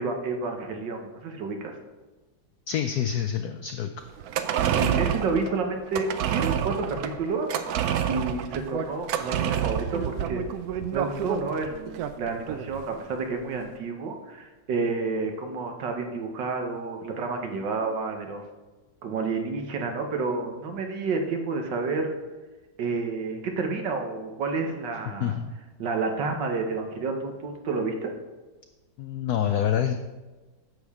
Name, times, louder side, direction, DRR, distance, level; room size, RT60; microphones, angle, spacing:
voice 1, 0.0-1.7 4.7-7.8 8.1-10.4 10.9-18.4 19.0-22.1 22.8-25.4 25.8-28.1, right 4 dB, 65° right, 4 dB, 1.6 m, -30 dB
voice 2, 2.7-3.9 25.2-25.5 29.0-29.9, left 9 dB, 80° left, 7 dB, 0.8 m, -26 dB
sound 1, 4.1-12.8 13.1-13.2, right 9 dB, 85° right, 0.8 m, -28 dB
9.6 x 7.0 x 3.6 m, 1.2 s
omnidirectional pair, 2.2 m